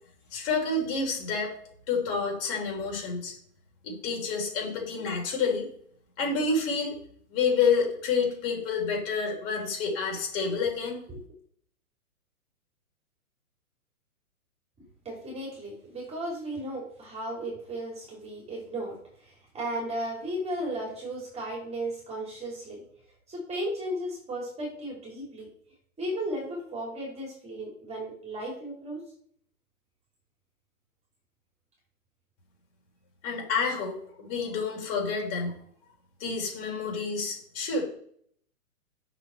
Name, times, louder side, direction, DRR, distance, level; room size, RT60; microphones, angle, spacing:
voice 1, 0.3-1.5 1.9-3.3 3.8-5.7 6.2-7.0 7.3-11.0 33.2-35.6 36.2-37.8, left 4 dB, 40° left, 0 dB, 4.3 m, -28 dB
voice 2, 15.0-22.8 23.3-25.5 26.0-29.0 33.5-33.7, right 1 dB, 15° right, -2 dB, 3.0 m, -35 dB
9.6 x 6.4 x 4.4 m, 0.63 s
hypercardioid pair, 125°, 44 cm